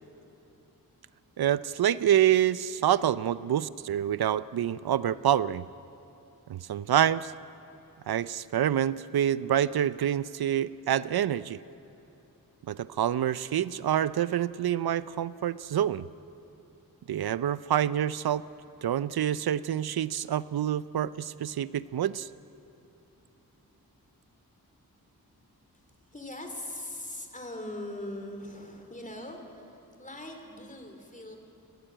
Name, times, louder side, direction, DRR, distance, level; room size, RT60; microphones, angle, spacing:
voice 1, 1.4-5.6 6.5-7.3 8.1-11.6 12.7-16.0 17.1-18.4 18.8-22.3, right 10 dB, 80° right, 17 dB, 0.5 m, -27 dB
voice 2, 26.1-31.4, left 1 dB, 20° left, 4 dB, 3.3 m, -41 dB
22.5 x 17.0 x 9.0 m, 3.0 s
wide cardioid pair, 100°, 37 cm